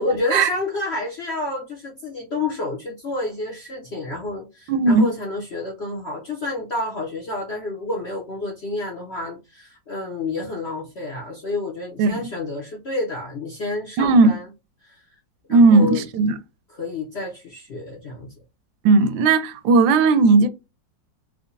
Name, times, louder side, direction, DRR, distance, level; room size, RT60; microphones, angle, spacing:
voice 1, 0.0-14.4 14.8-15.0 15.5-16.0 16.7-18.4, left 2 dB, 60° left, 0.6 m, -29 dB
voice 2, 4.7-5.1 12.0-12.3 14.0-14.3 15.5-16.4 18.8-20.5, right 3 dB, 85° right, 1.3 m, -16 dB
4.7 x 2.1 x 2.6 m
omnidirectional pair, 2.0 m